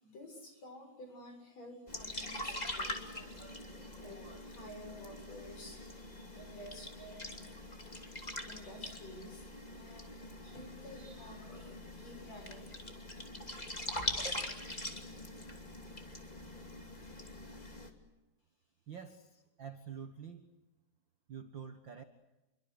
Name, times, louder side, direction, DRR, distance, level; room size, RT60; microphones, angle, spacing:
voice 1, 0.0-7.5 8.4-12.6, equal, 50° left, 4 dB, 8.3 m, -52 dB
sound 1, 1.9-17.9, left 1 dB, 15° left, 2.3 m, -43 dB
voice 2, 18.9-20.5 21.3-22.0, right 7 dB, 50° right, 8 dB, 1.4 m, -47 dB
28.5 x 23.5 x 8.2 m, 0.99 s
omnidirectional pair, 4.0 m